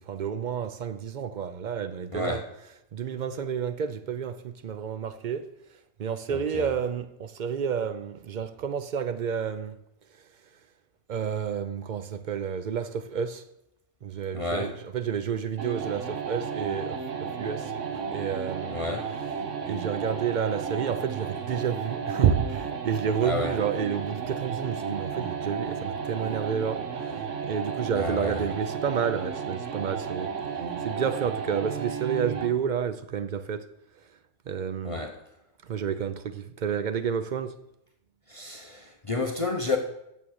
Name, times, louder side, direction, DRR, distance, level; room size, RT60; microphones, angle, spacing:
voice 1, 0.0-2.4 2.9-5.5 6.0-9.7 11.1-13.4 14.0-17.7 18.1-18.8 19.7-27.2 27.4-30.3 30.8-33.6 34.5-35.0 35.7-37.5, right 7 dB, 55° right, 0.5 m, -30 dB
voice 2, 2.1-2.5 6.3-6.7 14.3-14.7 18.7-19.1 23.2-23.6 27.9-28.5 34.8-35.2 38.3-39.8, left 3 dB, 30° left, 0.7 m, -30 dB
sound 1, 15.6-32.6, right 6 dB, 75° right, 1.3 m, -33 dB
8.5 x 7.1 x 6.4 m
omnidirectional pair, 1.3 m